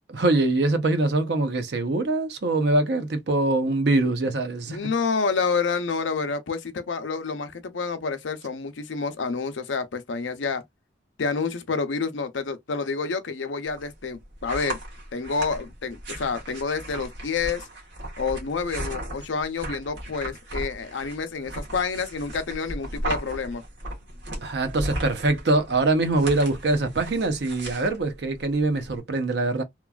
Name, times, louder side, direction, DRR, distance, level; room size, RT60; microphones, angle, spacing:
voice 1, 0.1-4.8 24.4-29.6, right 2 dB, 65° right, 0.6 m, -23 dB
voice 2, 4.7-10.6 11.2-14.8 15.1-17.7 18.2-23.6, left 4 dB, 80° left, 0.6 m, -28 dB
sound 1, 13.7-29.0, right 1 dB, 80° right, 1.1 m, -36 dB
3.0 x 2.3 x 2.3 m
head